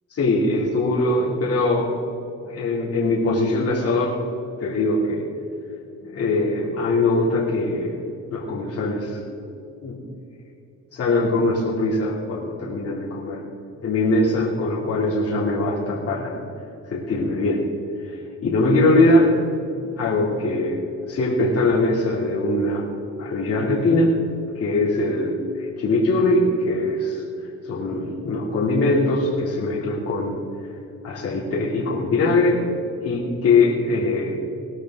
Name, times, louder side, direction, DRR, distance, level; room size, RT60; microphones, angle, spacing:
voice 1, 0.1-1.9 2.4-4.2 4.6-5.2 6.0-8.0 8.3-9.4 9.8-10.0 10.9-13.4 13.8-16.4 16.9-17.6 18.0-19.3 19.8-20.8 21.1-22.8 23.2-24.1 24.5-27.2 27.6-30.4 31.0-32.6 33.0-34.4, left 2 dB, 50° left, -5 dB, 3.0 m, -21 dB
19.0 x 13.0 x 3.9 m, 2.7 s
cardioid pair, 130°, 32 cm